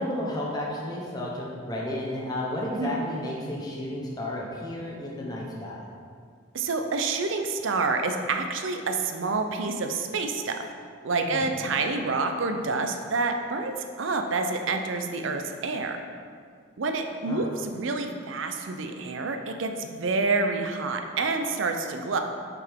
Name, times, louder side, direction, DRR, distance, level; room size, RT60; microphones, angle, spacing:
voice 1, 0.0-5.9 11.3-11.5 17.3-17.5, left 1 dB, 20° left, -3 dB, 0.9 m, -32 dB
voice 2, 6.5-10.6 11.0-16.0 16.8-22.2, right 3 dB, 75° right, 5 dB, 0.5 m, -28 dB
5.9 x 5.8 x 3.6 m, 2.1 s
head